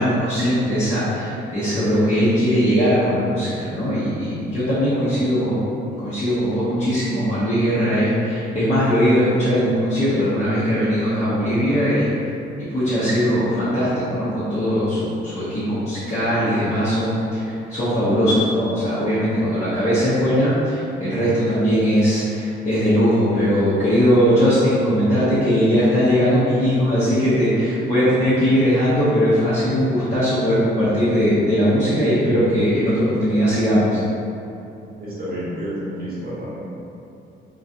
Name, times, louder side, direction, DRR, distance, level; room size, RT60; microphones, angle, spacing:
voice 1, 0.0-12.1 12.7-34.0, equal, 35° left, -14 dB, 0.9 m, -19 dB
voice 2, 35.0-36.6, equal, 50° right, -9 dB, 1.2 m, -30 dB
3.0 x 2.5 x 2.6 m, 2.7 s
cardioid pair, 90°, 20 cm